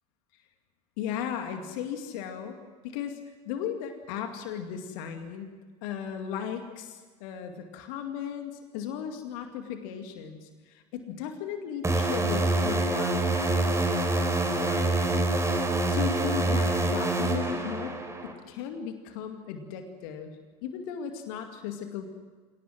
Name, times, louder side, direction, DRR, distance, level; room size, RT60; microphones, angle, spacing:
voice 1, 1.0-2.6 2.8-3.2 3.5-15.3 15.9-17.9 18.2-20.3 20.6-22.1, left 8 dB, 55° left, 5 dB, 2.3 m, -36 dB
sound 1, 11.8-18.3, right 2 dB, 15° right, 4.2 m, -26 dB
27.0 x 18.5 x 7.8 m, 1.4 s
figure-of-eight pair, 70°, 21 cm